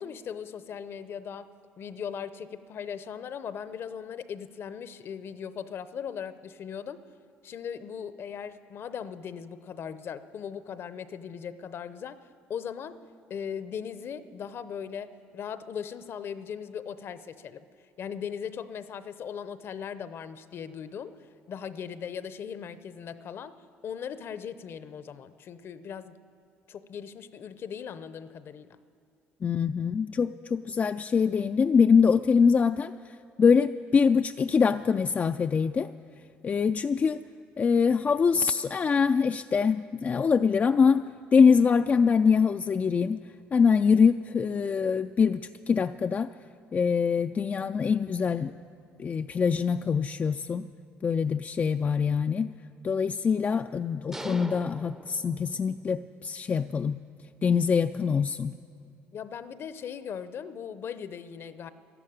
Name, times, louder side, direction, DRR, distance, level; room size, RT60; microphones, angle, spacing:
voice 1, 0.0-1.5 1.8-7.0 7.4-12.2 12.5-13.0 13.3-17.6 18.0-21.2 21.5-23.5 23.8-26.2 26.7-28.7 59.1-61.7, left 7 dB, 55° left, 14 dB, 0.7 m, -38 dB
voice 2, 29.4-32.9 33.4-35.9 36.4-37.2 37.6-41.0 41.3-43.2 43.5-46.3 46.7-48.5 49.0-50.7 51.0-52.5 52.8-57.0 57.4-58.5, left 6 dB, 35° left, 7 dB, 0.3 m, -24 dB
sound 1, 54.1-55.9, right 1 dB, 10° right, 0.6 m, -42 dB
13.0 x 12.0 x 8.7 m, 2.3 s
supercardioid pair, 75°, 5 cm